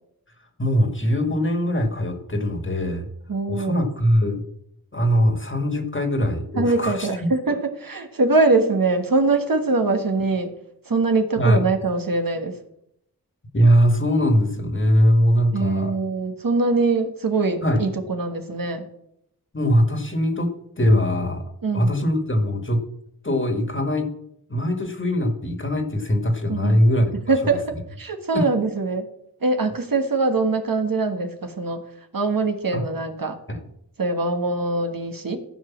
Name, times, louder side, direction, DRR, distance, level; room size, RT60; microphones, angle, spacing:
voice 1, 0.6-3.1 3.5-4.4 4.9-7.1 7.5-7.6 11.4-11.7 13.5-15.9 17.6-17.8 19.5-21.4 21.7-22.8 23.2-24.1 24.5-27.6 28.3-28.5 32.7-32.8 33.5-33.6, equal, 30° left, 5 dB, 1.8 m, -21 dB
voice 2, 3.3-3.8 6.5-10.5 10.9-12.5 15.5-18.8 21.6-21.9 26.5-26.8 27.3-27.6 28.0-29.1 29.4-31.8 32.1-33.4 34.0-35.4, right 3 dB, 60° right, 5 dB, 1.5 m, -22 dB
14.5 x 5.1 x 7.2 m, 0.76 s
wide cardioid pair, 65°, 38 cm